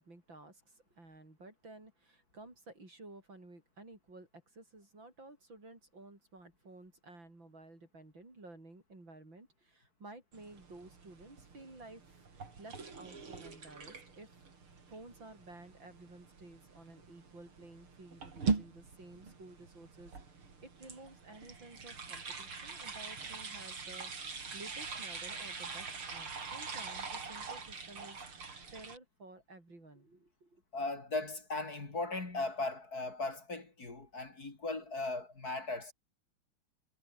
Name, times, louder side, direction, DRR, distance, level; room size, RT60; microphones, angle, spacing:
voice 1, 0.0-14.4 14.9-24.1 24.5-30.6, right 2 dB, 65° right, 8.2 m, -54 dB
sound 1, 10.3-29.0, right 4 dB, 85° right, 4.6 m, -43 dB
voice 2, 30.7-35.9, left 2 dB, 45° left, 4.1 m, -38 dB
omnidirectional pair, 2.3 m